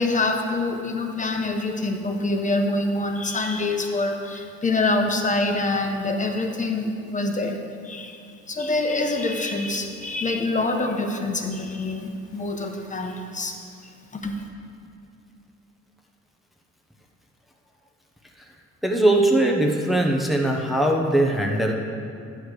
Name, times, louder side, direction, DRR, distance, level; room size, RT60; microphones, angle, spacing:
voice 1, 0.0-7.5 7.8-8.2 8.5-13.5 14.1-14.4, left 2 dB, 25° left, 3 dB, 1.2 m, -25 dB
voice 2, 18.8-21.7, right 1 dB, ahead, 0 dB, 1.2 m, -20 dB
11.5 x 8.0 x 5.0 m, 2.4 s
cardioid pair, 90°, 30 cm